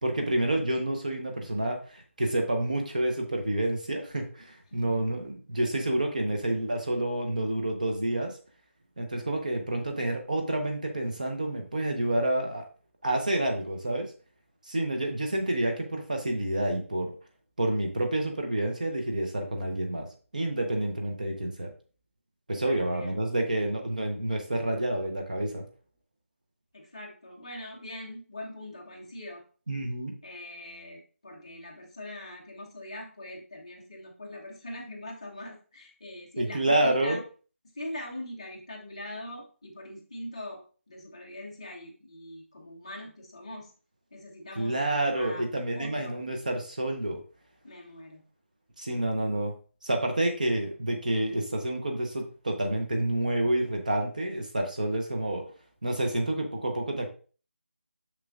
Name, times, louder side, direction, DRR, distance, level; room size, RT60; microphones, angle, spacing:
voice 1, 0.0-8.4 9.0-12.6 13.0-14.1 14.6-17.1 17.6-20.1 20.3-21.7 22.5-25.6 29.7-30.1 36.4-37.2 44.6-47.2 48.8-49.5 49.8-55.4 55.8-57.1, right 1 dB, 35° right, 3 dB, 1.0 m, -29 dB
voice 2, 4.7-5.1 22.5-23.1 26.7-29.4 30.2-37.2 37.7-43.7 44.1-44.8 45.1-45.4 45.7-46.2 47.6-48.2, left 1 dB, 25° left, -1 dB, 1.0 m, -42 dB
6.6 x 6.4 x 2.5 m, 0.38 s
figure-of-eight pair, 180°, 8 cm